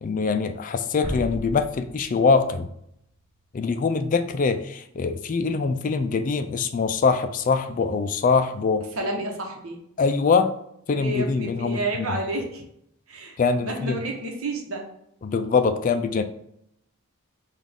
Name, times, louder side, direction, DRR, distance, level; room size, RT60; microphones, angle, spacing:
voice 1, 0.0-2.7 3.5-8.8 10.0-10.5 10.9-12.1 13.4-14.0 15.2-16.2, left 4 dB, 35° left, 9 dB, 0.3 m, -23 dB
sound 1, 1.0-3.9, equal, 40° right, 1.3 m, -36 dB
voice 2, 8.9-9.8 10.9-12.6 13.1-14.9, right 2 dB, 70° right, 1 dB, 1.0 m, -30 dB
5.9 x 2.4 x 3.5 m, 0.74 s
head